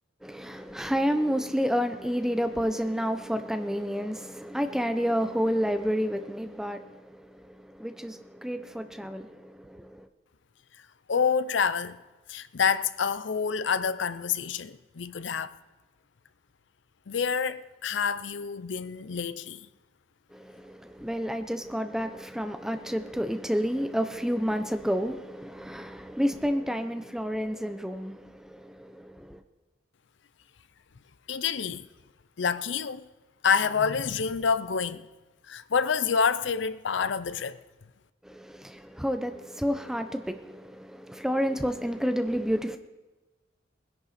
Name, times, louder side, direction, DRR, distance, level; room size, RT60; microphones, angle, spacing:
voice 1, 0.2-10.1 20.3-29.4 38.2-42.8, equal, 5° right, 0.7 m, -30 dB
voice 2, 11.1-12.0 12.3-15.6 17.1-19.7 31.3-31.8 32.4-33.1 33.4-35.1 35.5-37.6, left 6 dB, 65° left, 0.5 m, -27 dB
20.5 x 11.0 x 4.2 m
head